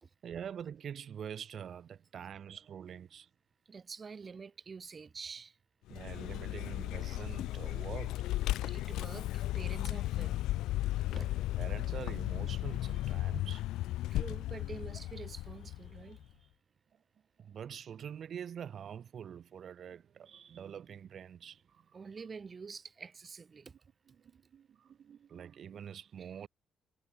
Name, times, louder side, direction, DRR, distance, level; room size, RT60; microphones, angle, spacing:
voice 1, 0.2-3.3 5.9-8.3 11.1-13.7 17.4-22.0 24.1-26.5, right 8 dB, 60° right, 2.3 m, -45 dB
voice 2, 3.7-5.6 8.7-10.4 11.1-11.3 13.3-13.5 14.1-16.5 21.9-23.8, right 5 dB, 35° right, 2.6 m, -47 dB
Vehicle, 5.9-16.2, left 15 dB, 90° left, 0.5 m, -35 dB
cardioid pair, 90°, 0 cm